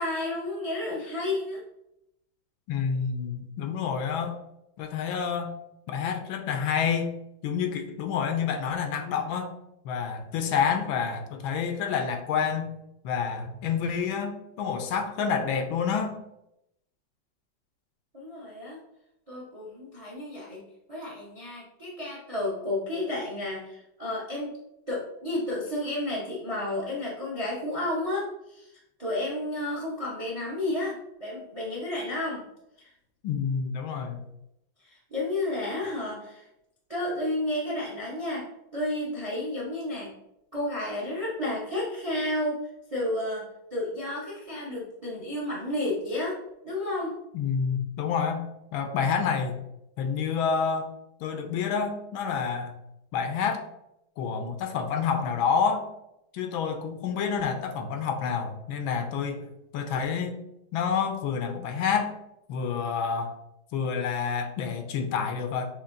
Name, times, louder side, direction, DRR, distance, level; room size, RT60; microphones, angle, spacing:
voice 1, 0.0-1.6 18.1-18.8 19.3-20.6 20.9-24.6 24.9-28.7 29.0-32.4 32.8-32.9 34.8-36.4 36.9-38.4 38.7-40.1 40.5-42.6 42.9-46.4 46.6-47.2, left 1 dB, 45° right, -5 dB, 0.4 m, -31 dB
voice 2, 2.7-4.4 4.8-5.5 5.9-9.5 9.8-12.7 13.0-16.2 33.2-34.2 47.3-48.5 48.7-49.6 50.0-50.9 51.2-52.7 53.1-53.6 54.2-55.9 56.3-59.5 59.7-60.4 60.7-62.1 62.5-63.3 63.7-65.6, left 6 dB, 85° left, 6 dB, 1.4 m, -28 dB
6.5 x 2.5 x 2.5 m, 0.84 s
omnidirectional pair, 2.2 m